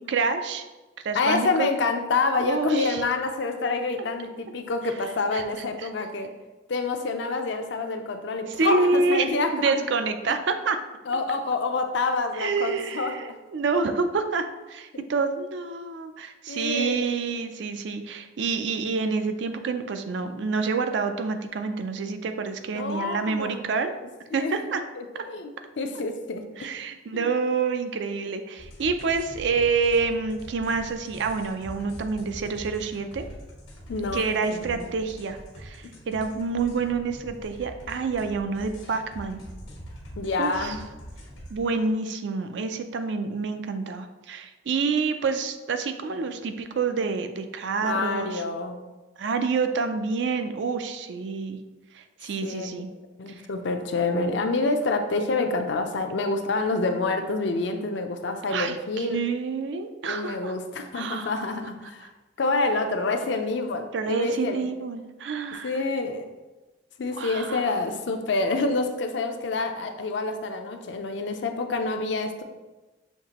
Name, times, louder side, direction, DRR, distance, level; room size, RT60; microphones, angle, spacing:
voice 1, 0.1-0.6 1.0-1.7 2.4-3.0 5.3-5.4 5.8-5.9 8.6-10.8 12.4-23.9 24.3-24.8 25.1-25.2 26.6-33.3 34.1-39.4 40.4-40.8 41.5-48.4 49.2-51.6 51.9-52.9 53.3-53.4 58.5-60.5 60.9-61.3 63.9-65.7 67.1-67.7, right 4 dB, 65° right, 7 dB, 0.4 m, -28 dB
voice 2, 1.1-6.3 6.7-9.9 11.1-13.4 14.9-15.0 16.5-17.0 22.7-23.6 24.3-24.6 25.0-25.5 25.8-26.4 27.1-27.3 33.9-34.9 35.8-35.9 40.2-40.8 47.8-48.8 52.4-52.7 53.2-59.2 60.0-62.1 62.4-64.6 65.6-66.2 67.0-72.4, left 3 dB, 70° left, 6 dB, 0.5 m, -27 dB
sound 1, 28.6-41.6, equal, 90° left, 1.3 m, -43 dB
6.5 x 2.8 x 2.9 m, 1.1 s
head